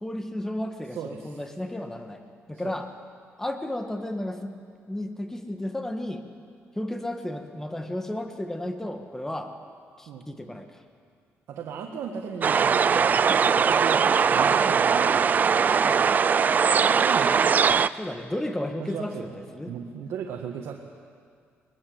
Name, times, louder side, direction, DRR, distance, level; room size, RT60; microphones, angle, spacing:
voice 1, 0.0-2.2 2.5-2.9 3.4-4.6 4.9-6.2 6.8-9.5 10.0-10.7 15.8-16.2 18.0-19.8, left 1 dB, 10° left, 6 dB, 1.8 m, -33 dB
voice 2, 0.9-1.4 2.6-2.8 10.1-10.2 11.5-14.0 14.3-15.5 16.8-17.4 18.8-19.4 19.7-20.7, right 7 dB, 80° right, 1 dB, 1.6 m, -36 dB
sound 1, 12.4-17.9, right 6 dB, 40° right, 0.5 m, -21 dB
21.0 x 20.5 x 7.9 m, 2.1 s
cardioid pair, 120°, 5 cm